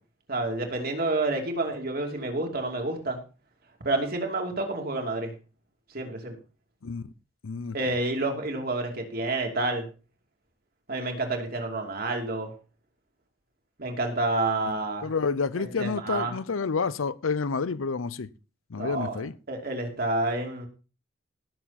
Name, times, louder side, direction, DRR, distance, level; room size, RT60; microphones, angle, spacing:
voice 1, 0.3-3.2 3.8-5.3 5.9-6.4 7.7-9.9 10.9-12.5 13.8-15.1 15.6-16.4 18.8-19.2 19.5-20.7, right 2 dB, 45° right, 2.9 m, -29 dB
voice 2, 7.4-7.8 14.7-14.8 15.0-18.3 18.7-19.3, left 4 dB, 90° left, 0.7 m, -29 dB
17.5 x 7.1 x 4.2 m
head